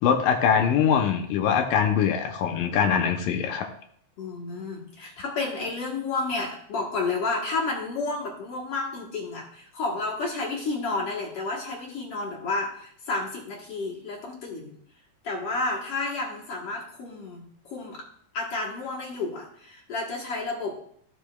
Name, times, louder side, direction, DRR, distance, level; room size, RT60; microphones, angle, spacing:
voice 1, 0.0-3.7, left 7 dB, 80° left, 4 dB, 2.2 m, -23 dB
voice 2, 4.2-14.7 15.2-18.0 18.3-20.8, left 3 dB, 60° left, -2 dB, 1.6 m, -31 dB
14.0 x 5.3 x 2.3 m, 0.65 s
omnidirectional pair, 4.3 m